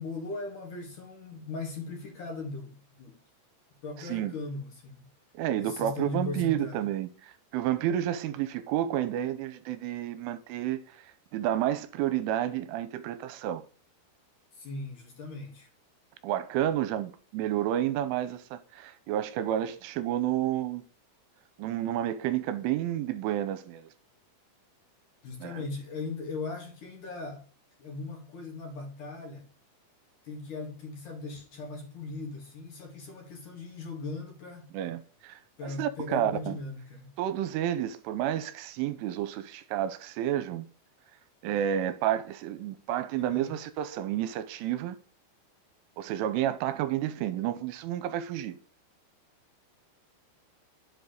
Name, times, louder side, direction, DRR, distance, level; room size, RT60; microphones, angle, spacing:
voice 1, 0.0-3.2 3.8-5.1 5.6-6.8 14.5-15.7 25.2-27.5 27.8-29.5 30.2-34.7 35.6-37.1 43.1-43.6, left 3 dB, 50° left, 3.2 m, -39 dB
voice 2, 4.0-4.3 5.3-10.8 11.3-13.6 16.2-20.8 21.6-23.8 25.4-25.5 34.7-36.6 37.2-40.7 41.4-45.0 46.0-48.6, right 11 dB, 85° right, 3.2 m, -30 dB
11.0 x 8.1 x 6.5 m
omnidirectional pair, 5.8 m